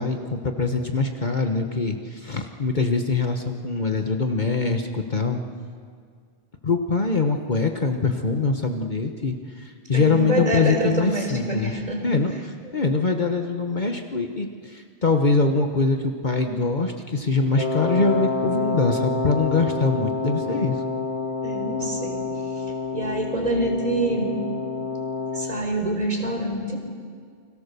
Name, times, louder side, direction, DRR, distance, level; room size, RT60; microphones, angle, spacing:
voice 1, 0.0-5.4 6.6-20.8, left 3 dB, 45° left, 5 dB, 1.4 m, -23 dB
voice 2, 9.9-12.0 21.4-22.2 22.9-24.3 25.4-26.8, right 1 dB, 35° right, 2 dB, 4.0 m, -26 dB
Wind instrument woodwind instrument, 17.6-25.6, left 3 dB, 75° left, 2.1 m, -28 dB
29.5 x 23.0 x 6.9 m, 2.1 s
omnidirectional pair, 1.1 m